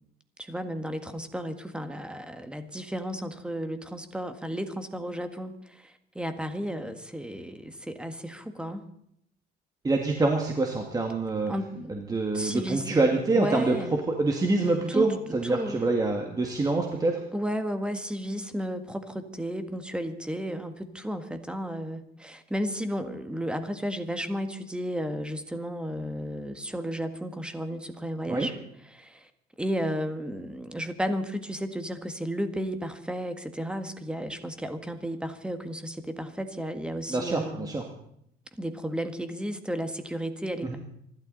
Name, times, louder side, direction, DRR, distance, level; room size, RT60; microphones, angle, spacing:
voice 1, 0.4-8.8 11.5-14.0 14.9-15.1 15.4-15.9 17.3-28.5 28.8-29.3 29.6-37.7 38.6-40.8, equal, 5° right, 8 dB, 1.7 m, -33 dB
voice 2, 9.8-11.5 11.9-17.2 28.3-28.5 37.1-37.8 40.6-40.8, right 3 dB, 20° right, 2 dB, 1.9 m, -26 dB
27.0 x 12.5 x 4.1 m, 0.72 s
cardioid pair, 110°, 17 cm